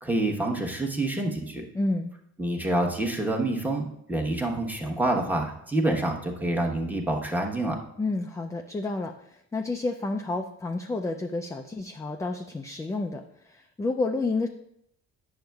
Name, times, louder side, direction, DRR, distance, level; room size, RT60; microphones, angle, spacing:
voice 1, 0.0-1.7 2.4-7.8, right 1 dB, 5° right, 0 dB, 1.0 m, -27 dB
voice 2, 1.7-2.1 8.0-14.5, left 2 dB, 10° left, 4 dB, 0.3 m, -30 dB
8.8 x 6.3 x 2.3 m, 0.76 s
cardioid pair, 90°, 30 cm